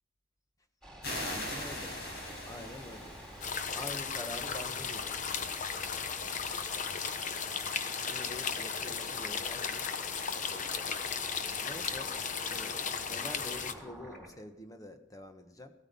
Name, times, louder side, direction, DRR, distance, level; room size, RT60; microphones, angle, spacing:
sound 1, 0.8-14.3, right 1 dB, 5° left, 3.7 m, -49 dB
sound 2, 1.0-4.3, left 1 dB, 60° left, 5.1 m, -41 dB
voice 1, 1.2-2.0 2.5-3.2 3.7-5.3 8.1-9.9 10.4-10.9 11.6-12.1 12.5-15.7, left 1 dB, 20° left, 7 dB, 1.3 m, -46 dB
sound 3, 3.4-13.7, left 6 dB, 45° left, 0.9 m, -36 dB
16.0 x 13.0 x 5.4 m, 1.0 s
head